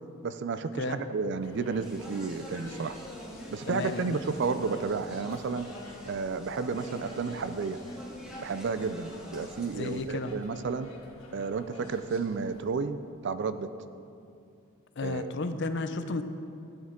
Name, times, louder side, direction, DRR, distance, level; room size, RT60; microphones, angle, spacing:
voice 1, 0.2-3.0 3.5-5.7 6.0-7.8 8.4-10.9 11.3-13.0 13.2-13.7 15.0-15.6, right 4 dB, 55° right, 12 dB, 0.4 m, -32 dB
sound 1, 1.4-12.7, left 2 dB, 75° left, 1.6 m, -50 dB
Speech, 1.8-10.0, equal, 5° right, 1.0 m, -46 dB
voice 2, 3.7-4.2 9.7-10.3 15.0-16.2, left 3 dB, 55° left, 10 dB, 0.5 m, -33 dB
13.0 x 8.7 x 3.7 m, 2.6 s
head